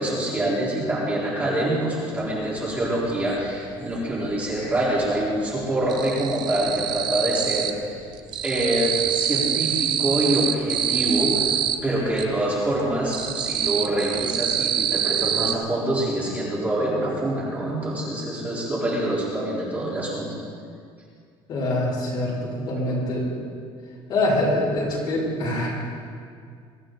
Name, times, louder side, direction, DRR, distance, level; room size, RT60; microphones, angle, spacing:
voice 1, 0.0-8.0 8.4-11.5 11.8-20.3, right 1 dB, 15° right, -7 dB, 3.8 m, -25 dB
sound 1, 2.3-2.4 2.7-4.0 4.2-4.9 5.2-12.3 12.7-15.5, right 9 dB, 45° right, 0.7 m, -25 dB
voice 2, 21.5-23.3 24.1-25.7, left 1 dB, 45° left, -6 dB, 5.1 m, -24 dB
23.0 x 14.0 x 3.9 m, 2.2 s
cardioid pair, 165°, 11 cm